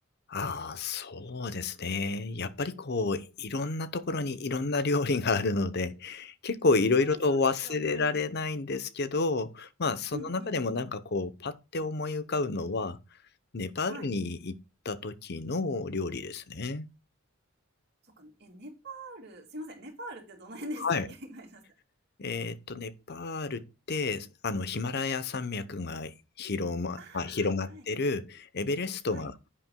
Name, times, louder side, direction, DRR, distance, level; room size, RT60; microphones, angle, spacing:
voice 1, 0.3-13.0 13.5-14.6 14.8-16.9 20.8-21.1 22.2-29.3, left 3 dB, 55° left, 0.8 m, -30 dB
voice 2, 6.9-8.3 10.1-10.6 13.9-14.1 18.0-21.6 27.0-27.9 29.1-29.3, right 1 dB, 55° right, 2.6 m, -44 dB
10.5 x 8.5 x 2.3 m
head